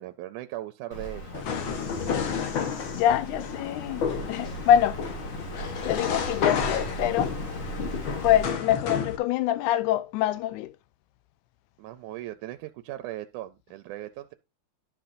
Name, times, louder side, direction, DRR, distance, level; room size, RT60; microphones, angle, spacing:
voice 1, 0.0-1.4 11.8-14.3, right 15 dB, 85° right, 2.0 m, -38 dB
Bird vocalization bird call bird song, 0.9-8.5, right 1 dB, 40° left, 1.3 m, -37 dB
sound 1, 1.3-9.2, left 7 dB, 60° left, 1.3 m, -31 dB
voice 2, 2.9-5.0 5.8-7.3 8.2-10.7, left 11 dB, 85° left, 2.1 m, -25 dB
12.0 x 6.0 x 2.6 m
omnidirectional pair, 3.5 m